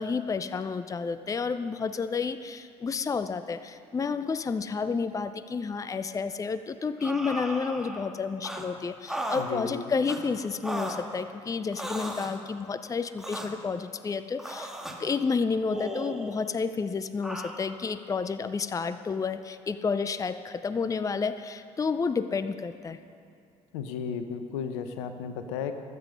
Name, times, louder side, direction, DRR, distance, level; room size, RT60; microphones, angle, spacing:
voice 1, 0.0-14.7 15.0-23.0, left 5 dB, 20° left, 12 dB, 0.6 m, -30 dB
sound 1, 7.0-8.1 8.4-8.7 9.1-9.5 10.0-10.2 10.6-11.0 11.7-12.4 13.2-13.5 14.4-15.0 15.7-16.5 17.2-17.5, right 1 dB, 5° right, 1.9 m, -36 dB
voice 2, 9.4-9.9 23.7-25.7, left 7 dB, 75° left, 8 dB, 1.0 m, -34 dB
20.5 x 8.2 x 5.4 m, 2.5 s
hypercardioid pair, 60°, 16 cm